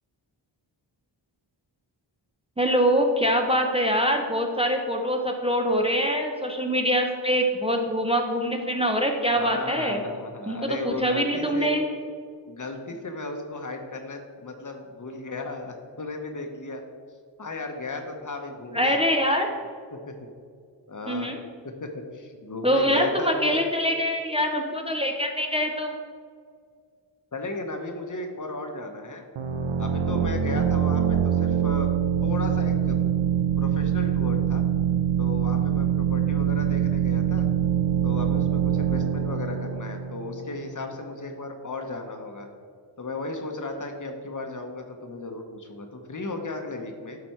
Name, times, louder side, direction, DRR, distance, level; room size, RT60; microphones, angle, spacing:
voice 1, 2.6-10.0 10.5-11.9 18.7-19.5 21.1-21.4 22.6-26.0, equal, 15° right, 2 dB, 0.7 m, -24 dB
voice 2, 9.4-11.7 12.5-16.8 17.4-19.0 19.9-20.3 20.9-21.3 21.6-23.6 27.3-29.2 29.8-31.9 32.2-33.0 33.6-34.6 35.2-37.4 38.0-42.5 43.0-47.2, left 2 dB, 40° left, 4 dB, 1.0 m, -35 dB
sound 1, 29.4-40.9, right 8 dB, 80° right, 0.7 m, -24 dB
12.0 x 4.2 x 4.4 m, 2.1 s
wide cardioid pair, 95°, 45 cm